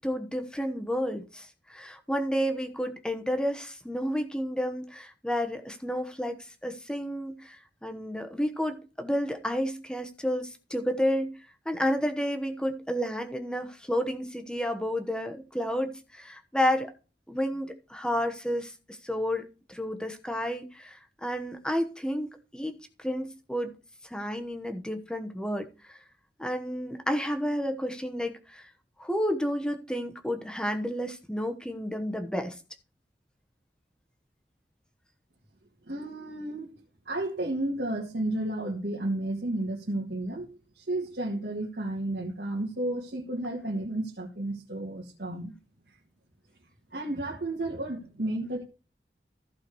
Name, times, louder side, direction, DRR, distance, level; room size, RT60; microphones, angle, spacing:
voice 1, 0.0-11.4 11.6-16.9 17.3-19.4 19.7-22.3 22.5-23.7 24.0-26.0 26.4-28.7 29.0-32.6, equal, 5° left, 1.1 m, -31 dB
voice 2, 35.9-45.5 46.9-48.6, right 1 dB, 70° right, 1.8 m, -32 dB
14.5 x 4.9 x 4.7 m
head